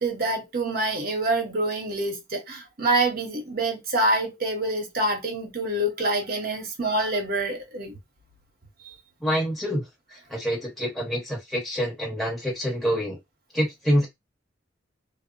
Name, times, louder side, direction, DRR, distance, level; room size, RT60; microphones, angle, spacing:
voice 1, 0.0-8.0, right 2 dB, 55° right, 0.8 m, -26 dB
voice 2, 9.2-9.8 10.1-13.2 13.5-14.1, equal, ahead, 0.9 m, -26 dB
2.0 x 2.0 x 3.7 m
head